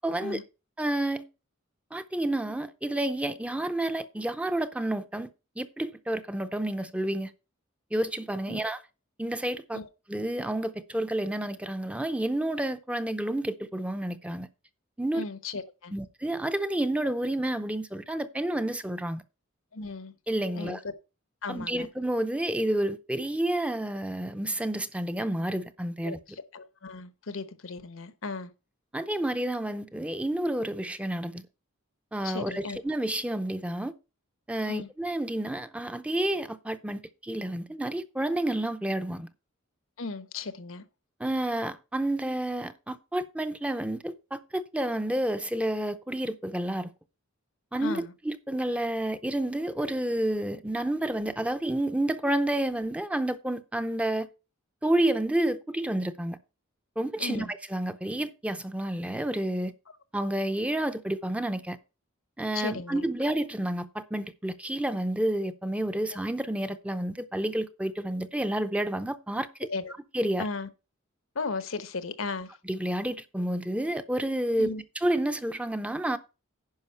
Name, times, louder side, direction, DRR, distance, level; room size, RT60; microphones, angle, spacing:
voice 1, 0.0-0.4 0.8-1.3 1.9-5.3 5.6-7.3 7.9-8.8 9.2-9.8 10.1-14.5 15.0-15.2 15.9-19.2 20.3-20.8 21.5-26.2 28.9-31.4 32.1-33.9 34.5-39.3 41.2-46.9 47.7-54.3 54.8-56.4 57.0-59.7 60.1-61.8 62.4-69.7 70.1-70.5 72.6-74.7 75.0-76.2, right 1 dB, 5° right, 0.6 m, -30 dB
voice 2, 15.1-15.9 19.7-20.1 20.5-20.8 21.4-21.9 26.0-26.2 26.5-28.5 32.2-32.8 34.7-34.9 40.0-40.8 47.8-48.1 57.2-57.5 62.5-63.0 66.1-66.2 69.7-69.9 70.4-70.7 71.3-72.6 74.6-74.8, left 4 dB, 75° left, 1.0 m, -36 dB
10.5 x 5.0 x 5.6 m
head